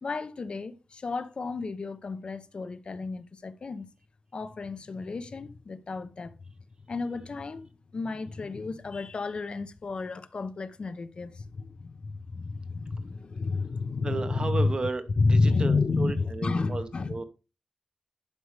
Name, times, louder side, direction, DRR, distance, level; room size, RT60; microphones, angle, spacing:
voice 1, 0.0-3.9 4.3-6.3 6.9-14.7 15.2-17.1, left 3 dB, 50° left, 0.8 m, -30 dB
voice 2, 14.0-17.2, right 3 dB, 40° right, 1.1 m, -33 dB
11.5 x 5.4 x 3.4 m
wide cardioid pair, 120°, 2 cm